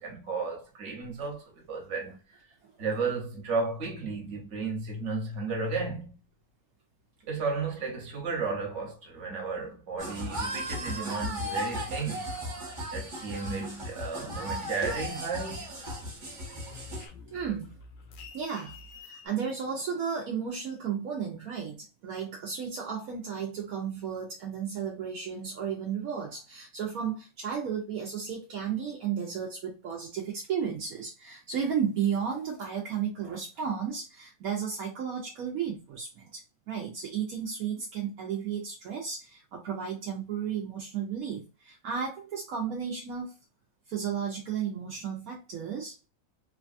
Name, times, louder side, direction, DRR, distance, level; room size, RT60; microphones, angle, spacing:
voice 1, 0.0-2.4 2.8-6.2 7.2-12.3 12.9-15.6, right 4 dB, 55° right, 1.3 m, -33 dB
sound 1, 10.0-17.1, equal, 35° right, 0.9 m, -36 dB
voice 2, 14.1-14.6 17.3-17.7 18.3-18.7 19.0-21.8 22.0-43.3 43.9-45.9, right 7 dB, 75° right, 1.1 m, -33 dB
sound 2, 14.2-15.6 15.9-19.3, left 4 dB, 70° left, 0.9 m, -50 dB
3.2 x 2.2 x 2.5 m
omnidirectional pair, 1.6 m